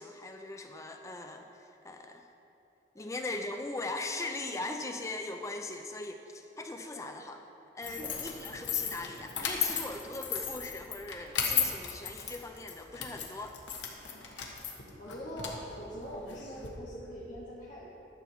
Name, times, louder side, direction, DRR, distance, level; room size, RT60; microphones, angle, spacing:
voice 1, 0.0-2.3 3.0-7.4 7.7-13.6, left 2 dB, 15° left, 5 dB, 0.4 m, -40 dB
sound 1, 7.8-16.7, left 7 dB, 80° left, 1.1 m, -35 dB
voice 2, 7.8-8.2 14.1-14.2 15.0-18.1, equal, 45° left, -8 dB, 1.5 m, -43 dB
11.5 x 4.6 x 7.0 m, 2.9 s
head